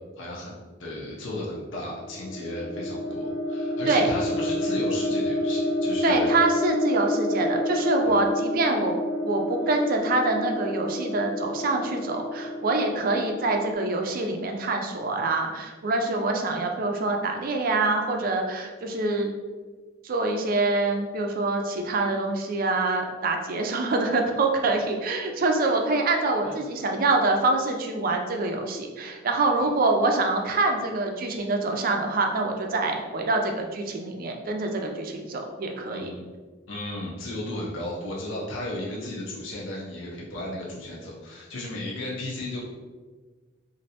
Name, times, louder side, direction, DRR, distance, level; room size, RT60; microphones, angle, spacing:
voice 1, 0.2-6.3 8.0-8.2 26.4-26.9 35.9-36.2 36.7-42.6, left 1 dB, 75° left, -4 dB, 0.6 m, -35 dB
sound 1, 1.8-13.7, left 1 dB, 40° left, 0.8 m, -29 dB
voice 2, 6.0-9.0 9.2-19.3 20.0-36.1, right 2 dB, 45° right, 3 dB, 0.4 m, -25 dB
3.1 x 2.5 x 2.7 m, 1.4 s
head